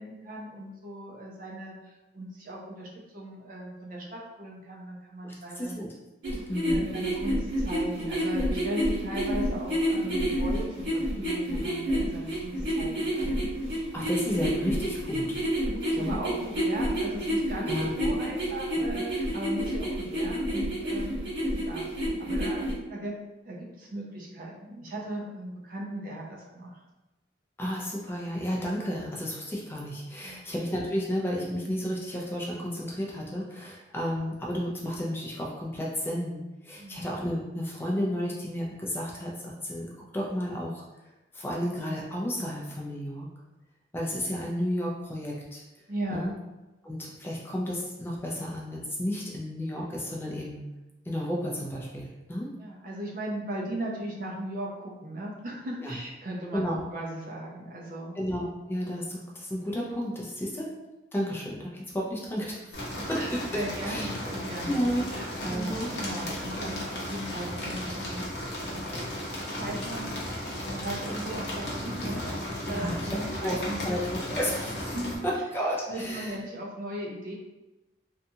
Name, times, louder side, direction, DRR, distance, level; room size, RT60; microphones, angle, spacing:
voice 1, 0.0-5.7 6.7-13.4 15.6-21.2 21.6-23.1 23.4-26.8 30.2-30.4 36.8-37.0 45.9-46.3 52.6-58.1 60.4-60.6 63.0-64.8 65.1-68.2 69.5-70.1 70.7-72.4 72.7-74.2 74.9-75.2 75.9-77.3, right 1 dB, 50° right, -2 dB, 0.5 m, -37 dB
voice 2, 5.2-5.9 6.3-6.8 13.9-15.4 16.0-16.2 17.7-17.9 27.6-40.8 41.3-43.3 43.9-45.6 46.1-46.3 46.8-50.6 51.1-52.5 55.8-56.0 56.5-56.8 58.2-60.7 61.1-62.8 63.1-63.2 63.8-64.1 64.6-65.0 65.5-65.9 72.7-73.1 73.4-74.9 75.2-76.4, equal, 10° left, -3 dB, 0.4 m, -32 dB
sound 1, 6.2-22.7, equal, 85° right, 1.1 m, -29 dB
sound 2, 62.7-75.2, left 1 dB, 65° left, 0.7 m, -35 dB
2.6 x 2.3 x 2.7 m, 1.1 s
head